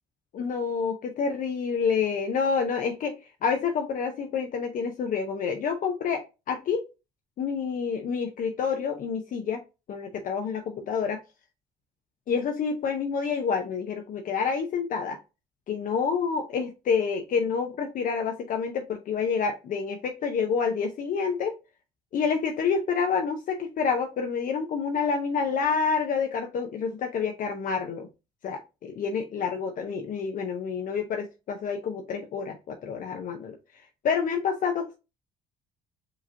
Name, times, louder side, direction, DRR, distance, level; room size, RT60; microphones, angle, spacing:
voice 1, 0.3-3.1 3.4-6.9 7.4-9.6 9.9-11.2 12.3-15.2 15.7-21.5 22.1-28.1 28.4-33.6 34.0-35.0, left 6 dB, 50° left, 0.6 m, -28 dB
4.9 x 3.0 x 2.7 m
cardioid pair, 110°, 17 cm